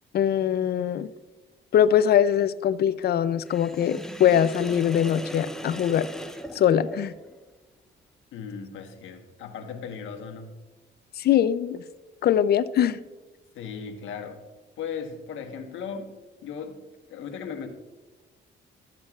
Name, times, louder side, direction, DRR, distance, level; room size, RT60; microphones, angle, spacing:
voice 1, 0.1-1.1 1.7-6.1 6.5-7.1 11.2-11.8 12.2-13.0, left 9 dB, 55° left, 14 dB, 0.4 m, -22 dB
Sink (filling or washing), 3.5-7.4, equal, ahead, 0.6 m, -39 dB
voice 2, 8.3-10.6 13.5-14.4 14.8-16.1 16.4-16.8 17.1-17.7, left 6 dB, 80° left, 3 dB, 1.2 m, -37 dB
12.0 x 7.5 x 2.4 m, 1.2 s
cardioid pair, 90°, 20 cm